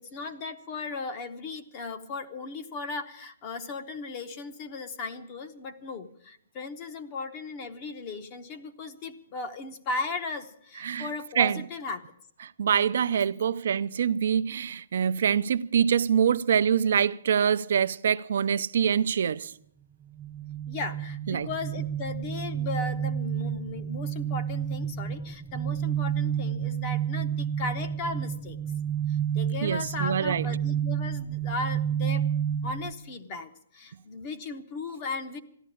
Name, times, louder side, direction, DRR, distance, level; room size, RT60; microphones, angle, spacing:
voice 1, 0.0-12.1 20.7-28.6 29.1-32.3 32.6-35.4, left 3 dB, 25° left, 0.9 m, -36 dB
voice 2, 10.8-11.1 11.4-11.6 12.4-19.5 21.3-21.5 29.6-30.5, right 8 dB, 60° right, 0.5 m, -25 dB
sound 1, 20.1-32.9, right 9 dB, 10° right, 0.5 m, -30 dB
14.0 x 11.0 x 8.6 m
hypercardioid pair, 165°, 0 cm